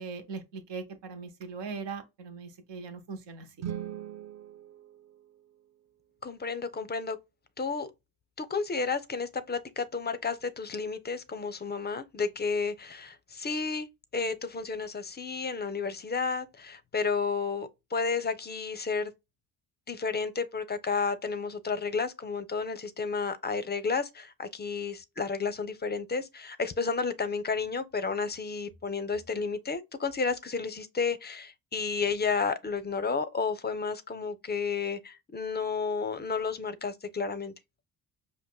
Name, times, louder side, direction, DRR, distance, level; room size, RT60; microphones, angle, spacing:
voice 1, 0.0-3.7, right 4 dB, 75° right, 1.2 m, -40 dB
sound 1, 3.5-5.8, right 10 dB, 40° right, 0.5 m, -41 dB
voice 2, 6.2-7.2 7.6-7.9 8.4-13.9 14.1-19.1 19.9-37.5, left 5 dB, 25° left, 0.5 m, -32 dB
5.1 x 2.6 x 2.2 m
cardioid pair, 85°, 43 cm